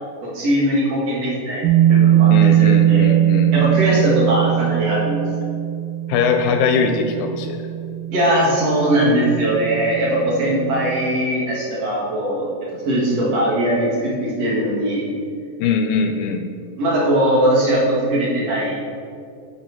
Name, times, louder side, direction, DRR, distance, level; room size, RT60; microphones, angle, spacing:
voice 1, 0.2-3.1 3.5-5.3 8.1-12.5 12.9-15.1 16.8-18.8, right 1 dB, 50° right, -5 dB, 2.5 m, -20 dB
sound 1, 1.6-11.1, right 11 dB, 85° right, 1.8 m, -20 dB
voice 2, 2.3-3.6 6.1-7.6 15.6-16.4, left 5 dB, 80° left, 6 dB, 2.1 m, -21 dB
9.5 x 3.9 x 6.0 m, 2.3 s
omnidirectional pair, 4.3 m